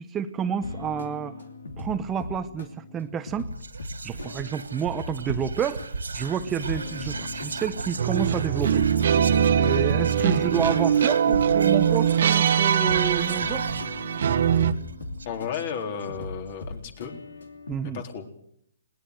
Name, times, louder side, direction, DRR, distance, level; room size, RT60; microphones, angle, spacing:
voice 1, 0.0-1.3 1.8-3.5 4.0-5.8 6.1-8.9 9.6-13.7 17.7-18.0, right 8 dB, 15° right, 9 dB, 0.9 m, -29 dB
sound 1, 0.6-17.8, left 3 dB, 80° left, 2.9 m, -39 dB
Whispering, 3.5-16.0, right 4 dB, 85° right, 1.8 m, -36 dB
sound 2, 8.0-14.7, right 8 dB, 60° right, 1.4 m, -22 dB
voice 2, 15.2-17.1 17.8-18.3, left 7 dB, 45° left, 5 dB, 4.1 m, -33 dB
20.5 x 19.5 x 8.0 m, 0.72 s
hypercardioid pair, 140°, 0 cm